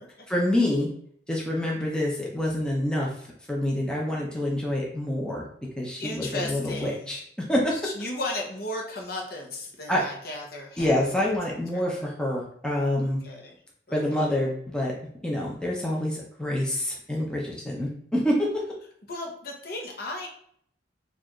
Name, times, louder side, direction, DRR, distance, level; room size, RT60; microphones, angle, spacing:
voice 1, 0.3-0.9 1.3-3.1 3.5-5.5 5.8-7.2 7.5-7.8 9.9-10.0 10.8-13.2 13.9-14.9 15.2-18.6, left 1 dB, 5° left, -3 dB, 0.6 m, -27 dB
voice 2, 6.0-7.1 7.7-10.9 13.0-13.6 13.9-14.3 19.1-20.3, left 2 dB, 55° left, 1 dB, 0.8 m, -35 dB
4.5 x 2.5 x 3.0 m, 0.63 s
head